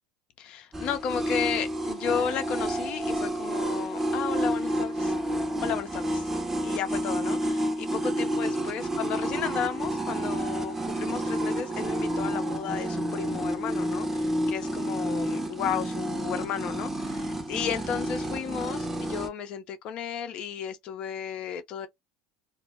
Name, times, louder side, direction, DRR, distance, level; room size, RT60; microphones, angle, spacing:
voice 1, 0.4-5.2 5.6-6.3 6.6-21.9, left 8 dB, 55° left, 0.5 m, -33 dB
sound 1, 0.7-19.3, right 1 dB, 15° right, 0.8 m, -30 dB
2.1 x 2.1 x 3.3 m
hypercardioid pair, 80°, 2 cm